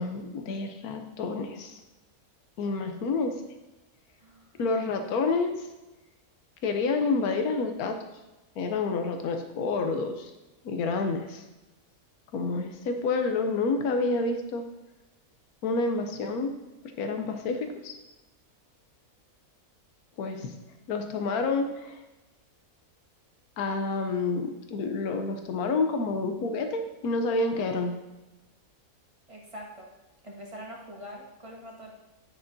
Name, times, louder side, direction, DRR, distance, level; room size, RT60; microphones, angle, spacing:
voice 1, 0.0-1.8 2.6-3.3 4.6-5.7 6.6-8.0 8.6-10.3 10.6-11.4 12.3-14.6 15.6-16.5 17.0-17.9 20.2-20.5 20.9-22.0 23.6-28.0, left 3 dB, 75° left, 6 dB, 1.3 m, -28 dB
voice 2, 4.2-4.5 29.3-29.9 30.2-31.9, equal, 20° right, -2 dB, 1.3 m, -44 dB
9.2 x 6.8 x 2.7 m, 1.1 s
omnidirectional pair, 1.6 m